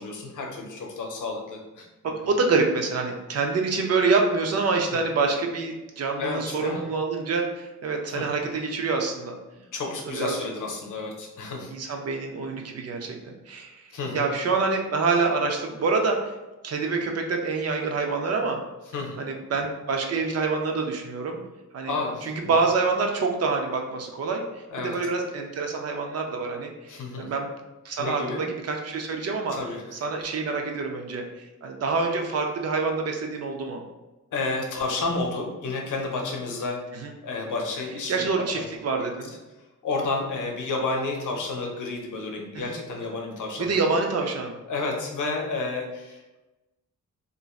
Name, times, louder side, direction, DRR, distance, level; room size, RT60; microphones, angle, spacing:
voice 1, 0.0-1.9 2.2-2.3 6.2-6.8 7.8-8.3 9.7-11.7 13.9-14.3 18.9-19.2 21.8-22.6 24.7-24.9 26.9-27.3 28.0-28.4 29.5-29.9 34.3-36.9 37.2-38.3 38.5-38.6 39.8-43.8 44.7-46.4, left 3 dB, 80° left, 1 dB, 0.7 m, -31 dB
voice 2, 2.0-9.4 10.2-10.4 11.7-13.7 14.1-16.3 16.6-18.6 19.2-21.4 21.7-22.0 22.2-27.5 27.8-29.6 29.9-31.2 31.6-33.8 36.9-37.1 38.1-39.3 42.5-42.8 43.6-44.5, right 4 dB, 55° right, 2 dB, 0.5 m, -26 dB
3.0 x 2.6 x 2.3 m, 1.1 s
wide cardioid pair, 130°, 31 cm